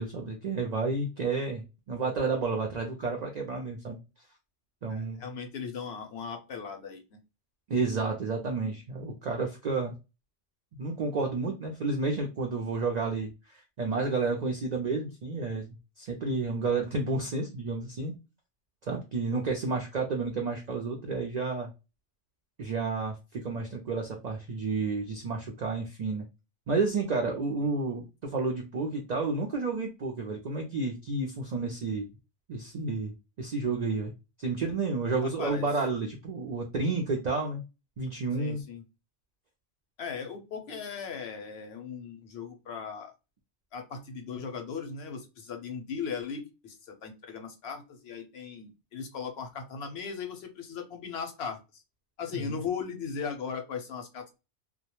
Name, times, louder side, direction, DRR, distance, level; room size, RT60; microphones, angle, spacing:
voice 1, 0.0-4.0 4.8-5.2 7.7-9.9 10.8-15.7 16.0-18.1 18.9-21.7 22.6-26.3 26.7-32.1 32.5-34.1 34.4-37.6 38.0-38.6 52.3-52.6, right 3 dB, 65° right, 2 dB, 0.4 m, -31 dB
voice 2, 4.9-7.2 19.7-19.8 27.6-27.7 35.4-35.7 38.4-38.8 40.0-43.1 43.7-51.8 52.2-54.4, left 6 dB, 65° left, 5 dB, 0.7 m, -38 dB
2.2 x 2.0 x 2.8 m, 0.27 s
omnidirectional pair, 1.3 m